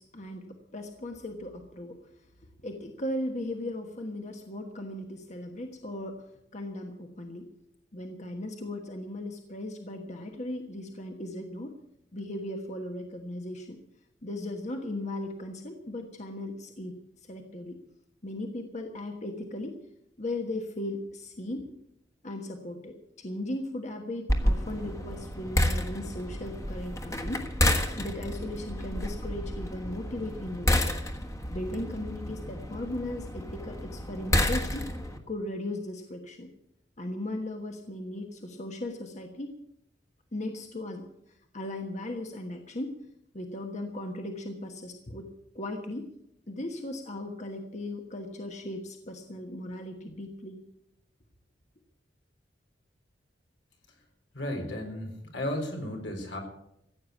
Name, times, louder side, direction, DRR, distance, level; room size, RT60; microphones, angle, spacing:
voice 1, 0.0-2.0 2.6-6.2 6.5-7.5 7.9-11.7 12.1-13.8 14.2-17.0 17.3-17.8 18.2-19.8 20.2-21.7 22.2-27.5 28.0-31.0 31.5-34.9 35.3-36.5 37.0-39.6 40.3-41.1 41.5-42.9 43.3-45.3 45.5-46.1 46.5-50.6, left 1 dB, 40° left, 4 dB, 1.3 m, -37 dB
sound 1, 24.3-35.2, left 1 dB, 15° left, 1.4 m, -30 dB
voice 2, 54.3-56.4, left 1 dB, 80° left, 2 dB, 4.2 m, -34 dB
15.0 x 8.8 x 8.3 m, 0.79 s
head